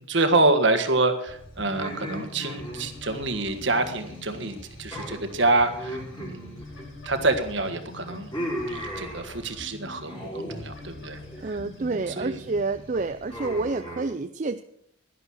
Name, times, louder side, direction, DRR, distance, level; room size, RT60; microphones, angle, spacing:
voice 1, 0.0-6.6 7.0-8.3 8.7-11.2 11.5-12.4, right 2 dB, 60° right, 8 dB, 1.6 m, -26 dB
sound 1, 1.3-13.7, left 2 dB, 65° left, 4.4 m, -44 dB
sound 2, 1.8-4.2 4.4-4.6 4.9-7.2 7.6-9.6 10.0-10.7 11.0-11.5 11.9-12.3 13.3-14.0, equal, 20° left, 5.0 m, -37 dB
voice 2, 11.4-14.6, right 3 dB, 35° right, 9 dB, 0.4 m, -29 dB
11.5 x 11.5 x 6.3 m, 0.72 s
head